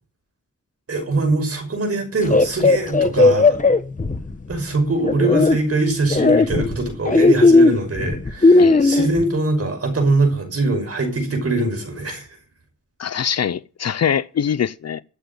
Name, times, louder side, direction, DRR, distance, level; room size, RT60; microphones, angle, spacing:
voice 1, 0.9-3.6 4.5-12.3, right 2 dB, 50° right, 5.8 m, -22 dB
sound 1, 2.3-4.6 5.0-5.6 6.1-9.2, left 3 dB, 25° left, 1.1 m, -15 dB
voice 2, 8.6-9.0 13.0-15.0, left 8 dB, 55° left, 0.6 m, -23 dB
12.5 x 7.8 x 8.6 m
wide cardioid pair, 105°, 31 cm